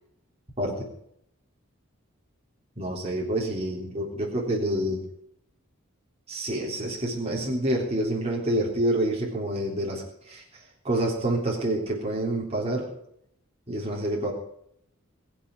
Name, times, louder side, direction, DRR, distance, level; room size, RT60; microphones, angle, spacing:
voice 1, 0.6-0.9 2.8-5.0 6.3-12.9 13.7-14.3, right 1 dB, 30° right, -3 dB, 3.5 m, -28 dB
21.0 x 7.1 x 8.4 m, 0.74 s
head